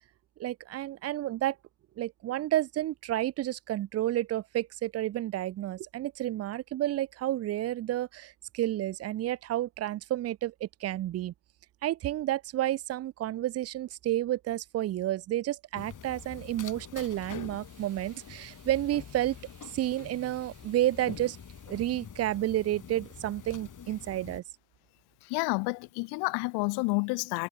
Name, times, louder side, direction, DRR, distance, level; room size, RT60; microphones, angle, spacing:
voice 1, 0.4-1.6 2.0-11.3 11.8-19.4 19.6-21.4 21.7-24.4, right 14 dB, 35° right, 0.5 m, -31 dB
sound 1, 15.7-24.4, left 7 dB, 45° left, 3.3 m, -46 dB
voice 2, 25.2-27.5, left 30 dB, 60° left, 0.5 m, -30 dB
figure-of-eight pair, 45°, 44 cm